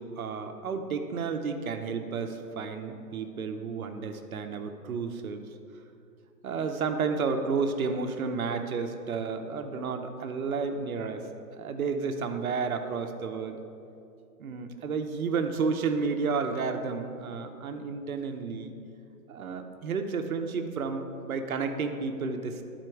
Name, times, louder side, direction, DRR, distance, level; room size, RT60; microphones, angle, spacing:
voice 1, 0.0-5.5 6.4-11.3 11.5-13.6 14.4-18.7 19.3-22.6, right 5 dB, 60° right, 6 dB, 0.8 m, -31 dB
11.0 x 4.4 x 4.5 m, 2.6 s
hypercardioid pair, 155°, 48 cm